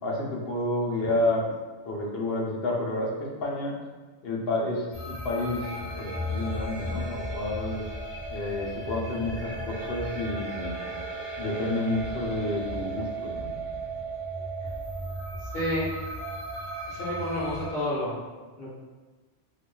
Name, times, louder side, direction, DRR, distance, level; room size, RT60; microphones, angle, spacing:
voice 1, 0.0-1.4 1.8-3.7 4.2-7.9 8.3-10.8 11.4-13.5, left 1 dB, 60° left, -2 dB, 0.9 m, -30 dB
sound 1, 4.9-17.7, right 1 dB, 10° left, 0.6 m, -35 dB
voice 2, 15.5-15.9 16.9-18.2 18.6-18.8, left 1 dB, 45° left, -8 dB, 1.2 m, -30 dB
4.6 x 2.4 x 2.2 m, 1.3 s
omnidirectional pair, 1.2 m